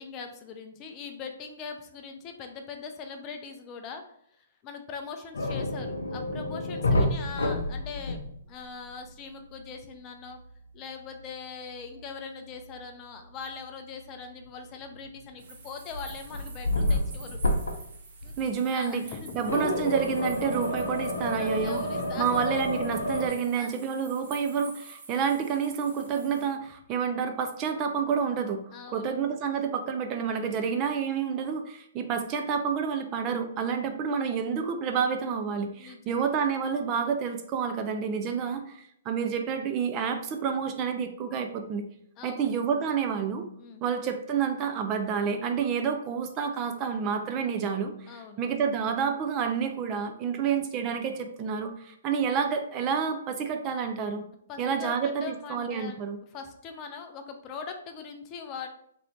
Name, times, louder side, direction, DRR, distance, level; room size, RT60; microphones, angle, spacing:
voice 1, 0.0-8.2 8.5-10.4 10.7-17.4 18.2-18.3 18.7-19.5 21.4-22.5 23.5-23.7 28.7-29.2 35.8-36.2 42.2-42.6 43.6-43.8 48.1-48.4 54.5-56.0 56.3-58.7, left 5 dB, 30° left, 5 dB, 0.5 m, -41 dB
sound 1, 5.3-8.6 8.9-9.1 12.6-12.7 15.0-15.4 15.9-18.0 18.2-18.5 19.5-23.3, left 1 dB, 70° left, 0.6 m, -29 dB
sound 2, 15.4-26.5, right 4 dB, 55° right, 0.9 m, -49 dB
voice 2, 18.4-19.0 19.3-21.8 22.2-28.6 28.9-41.8 42.2-43.5 43.8-54.2 54.6-56.2, right 6 dB, 30° right, 6 dB, 0.4 m, -29 dB
3.0 x 2.6 x 3.1 m, 0.70 s
figure-of-eight pair, 125°, 0 cm